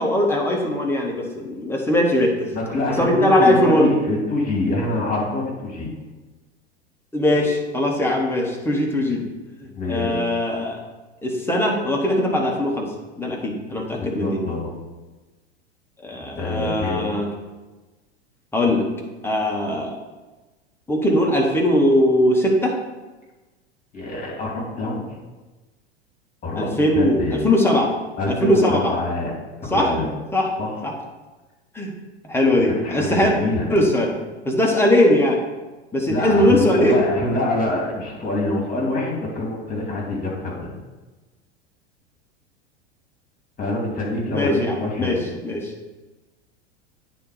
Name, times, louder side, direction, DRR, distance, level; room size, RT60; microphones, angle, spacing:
voice 1, 0.0-2.4 3.0-3.9 7.1-9.2 9.9-10.8 11.2-12.9 13.2-14.4 16.0-17.3 18.5-18.9 19.2-20.0 20.9-22.7 26.6-27.9 28.4-28.9 29.7-29.9 30.3-30.5 30.8-30.9 31.7-31.9 32.2-33.3 33.7-34.1 34.4-35.4 35.9-37.0 44.3-45.7, left 1 dB, 5° left, -1 dB, 1.5 m, -20 dB
voice 2, 2.5-5.9 9.6-10.2 14.0-14.7 16.4-17.1 23.9-25.0 26.4-27.4 28.2-29.3 29.6-30.1 30.6-30.8 32.8-33.7 36.1-40.7 43.6-45.3, left 2 dB, 25° left, -2 dB, 2.7 m, -25 dB
9.1 x 4.2 x 5.0 m, 1.2 s
figure-of-eight pair, 85°, 33 cm